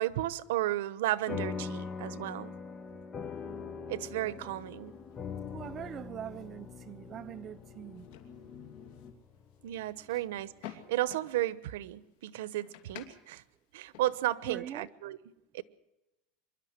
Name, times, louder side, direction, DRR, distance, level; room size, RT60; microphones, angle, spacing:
voice 1, 0.0-2.6 3.9-4.9 9.6-13.4 13.7-15.2 15.5-15.6, right 15 dB, 85° right, 1.0 m, -34 dB
sound 1, 1.3-10.0, left 6 dB, 15° left, 0.9 m, -42 dB
sound 2, 3.2-9.1, left 7 dB, 40° left, 1.9 m, -54 dB
sound 3, 3.9-14.4, left 11 dB, 60° left, 2.7 m, -55 dB
voice 2, 5.5-8.1 10.1-10.2 14.5-14.9, right 10 dB, 25° right, 0.7 m, -42 dB
24.5 x 12.0 x 9.5 m
supercardioid pair, 170°, 0 cm